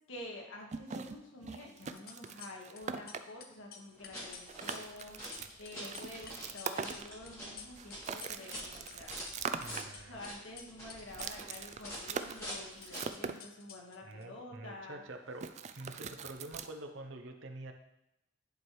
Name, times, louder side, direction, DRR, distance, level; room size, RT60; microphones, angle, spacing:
voice 1, 0.1-9.5 10.1-15.0, left 1 dB, 80° left, -1 dB, 1.6 m, -49 dB
sound 1, 0.7-3.2 4.1-4.2 4.5-7.3 7.8-9.8 11.1-13.4 15.4-16.7, right 6 dB, 35° right, 0.4 m, -41 dB
sound 2, 1.9-2.8 3.1-8.6 8.9-10.3 10.6-14.3, left 7 dB, 50° left, 0.7 m, -51 dB
sound 3, 3.9-13.2, equal, 15° left, 2.3 m, -47 dB
voice 2, 9.6-10.2 14.0-17.7, right 2 dB, 70° right, 5 dB, 0.8 m, -47 dB
10.5 x 4.5 x 3.2 m, 0.86 s
head